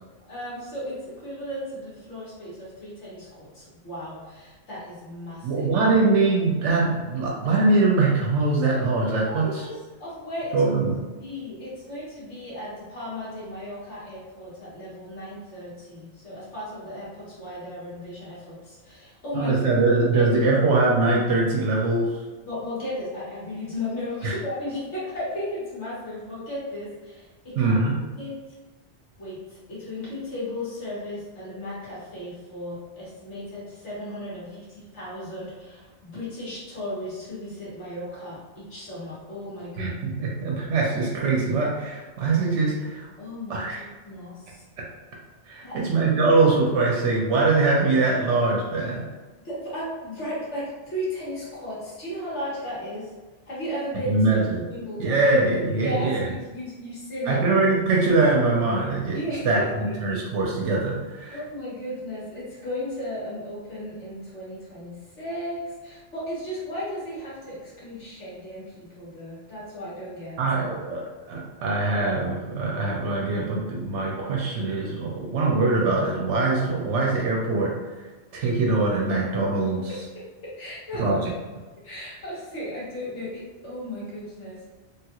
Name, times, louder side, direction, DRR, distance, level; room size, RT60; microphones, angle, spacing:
voice 1, 0.3-5.7 9.2-9.7 10.0-10.6 11.2-19.5 20.1-20.5 22.4-27.7 28.2-28.5 29.2-40.0 43.2-44.6 45.6-45.9 49.4-53.1 53.5-54.4 54.7-55.2 55.8-57.5 59.1-60.2 61.3-70.4 80.4-81.1 81.8-84.6, left 1 dB, 75° left, -8 dB, 1.6 m, -35 dB
voice 2, 5.4-9.5 10.5-10.9 19.3-22.2 24.2-24.3 27.6-28.0 39.8-43.1 43.5-43.8 45.5-49.0 54.1-54.6 55.0-56.2 57.3-59.2 59.4-59.6 60.0-61.4 70.4-71.0 71.3-77.7 78.3-79.9 81.0-81.2, right 3 dB, 85° right, -2 dB, 0.9 m, -22 dB
3.1 x 2.3 x 2.9 m, 1.3 s
omnidirectional pair, 1.2 m